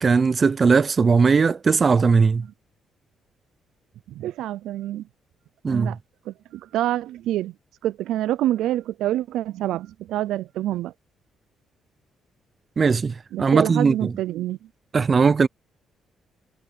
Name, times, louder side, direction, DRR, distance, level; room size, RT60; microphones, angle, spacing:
voice 1, 0.0-2.4 5.6-6.0 12.8-14.1 14.9-15.5, right 5 dB, 40° right, 0.7 m, -19 dB
voice 2, 4.2-5.0 5.7-6.0 6.3-7.5 7.8-10.9 13.3-14.6, right 13 dB, 85° right, 0.4 m, -27 dB
cardioid pair, 90°, 0 cm